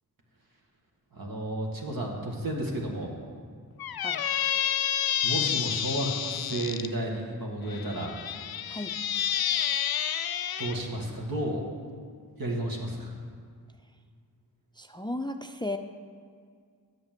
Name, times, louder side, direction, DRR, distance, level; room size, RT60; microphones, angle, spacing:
voice 1, 1.1-3.1 5.2-8.2 10.6-11.6 12.4-13.1, right 1 dB, 65° right, 0 dB, 1.8 m, -32 dB
Squeak, 3.8-6.9 7.7-10.8, left 9 dB, 70° left, 0.6 m, -29 dB
voice 2, 14.8-15.8, left 1 dB, 10° left, 7 dB, 0.4 m, -34 dB
8.7 x 6.0 x 7.5 m, 2.1 s
cardioid pair, 50°, 37 cm